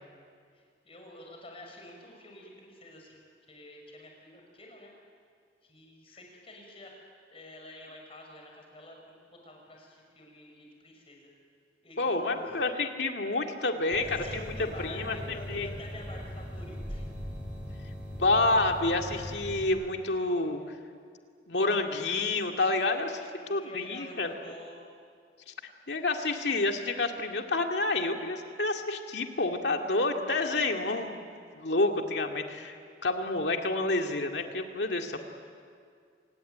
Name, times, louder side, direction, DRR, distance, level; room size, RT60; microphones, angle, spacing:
voice 1, 0.5-3.2 3.5-4.9 5.6-6.9 7.3-11.3 11.8-12.6 13.9-17.1 23.3-24.8, left 1 dB, 30° left, 1 dB, 6.0 m, -48 dB
voice 2, 12.0-14.0 14.3-14.5 14.8-15.2 15.5-15.7 18.1-20.6 21.5-24.3 25.5-25.6 25.9-32.8 33.0-35.2, left 2 dB, 70° left, 3 dB, 2.3 m, -29 dB
sound 1, 13.9-19.7, equal, 5° right, 5.7 m, -40 dB
27.0 x 19.0 x 9.3 m, 2.2 s
head